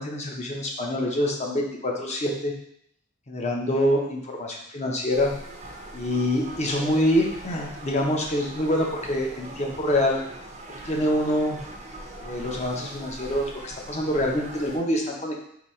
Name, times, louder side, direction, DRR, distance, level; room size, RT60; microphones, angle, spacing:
voice 1, 0.0-2.5 3.3-5.3 5.9-10.2 10.8-11.6 12.2-15.4, left 1 dB, 30° left, 0 dB, 0.7 m, -25 dB
sound 1, 5.1-14.8, right 1 dB, 30° right, 0.6 m, -41 dB
3.9 x 2.7 x 4.3 m, 0.71 s
head